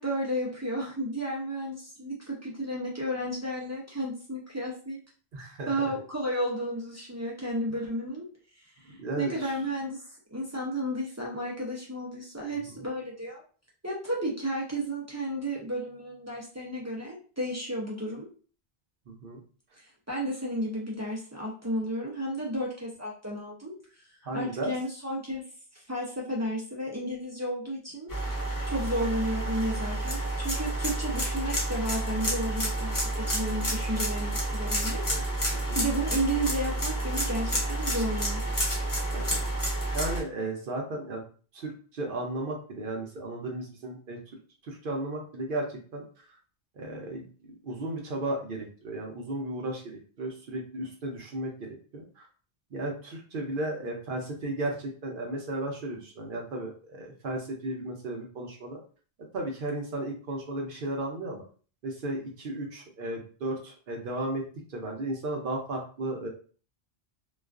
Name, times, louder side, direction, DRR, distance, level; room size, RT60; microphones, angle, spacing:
voice 1, 0.0-5.0 5.7-8.2 8.8-13.4 13.8-18.3 19.8-24.0 24.3-25.4 25.7-28.1 28.7-35.0 35.3-38.4, right 1 dB, 30° right, -4 dB, 0.3 m, -33 dB
voice 2, 5.3-5.9 8.9-9.5 19.1-19.4 24.2-24.7 35.1-35.2 35.7-35.8 39.1-41.2 41.5-44.4 44.6-46.0 46.8-51.7 51.9-52.3 52.7-58.8 59.3-61.4 61.8-64.4 64.7-66.3, right 2 dB, 60° right, 1 dB, 0.7 m, -35 dB
sound 1, 28.1-40.2, right 1 dB, 25° left, 0.5 m, -29 dB
2.3 x 2.3 x 2.3 m, 0.40 s
omnidirectional pair, 1.1 m